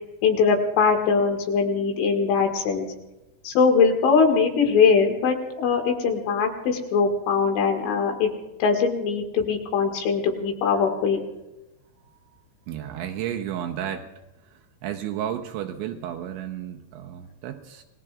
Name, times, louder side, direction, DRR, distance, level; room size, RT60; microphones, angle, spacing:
voice 1, 0.2-2.9 3.4-8.3 8.6-11.2, left 5 dB, 75° left, 2 dB, 4.1 m, -21 dB
voice 2, 12.7-14.1 14.5-17.8, right 10 dB, 80° right, 3 dB, 3.0 m, -32 dB
29.0 x 19.0 x 2.4 m, 0.98 s
omnidirectional pair, 5.8 m